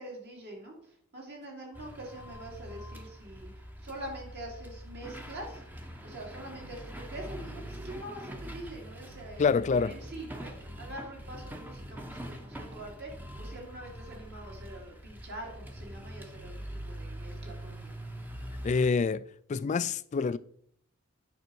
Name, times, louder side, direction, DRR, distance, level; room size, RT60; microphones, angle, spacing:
voice 1, 0.0-5.6 6.0-17.9, right 1 dB, 55° right, 2.6 m, -44 dB
sound 1, 1.7-18.9, right 1 dB, 10° right, 0.8 m, -43 dB
voice 2, 9.4-9.9 18.6-19.2 19.5-20.4, left 5 dB, 35° left, 0.3 m, -26 dB
9.3 x 5.5 x 4.6 m
head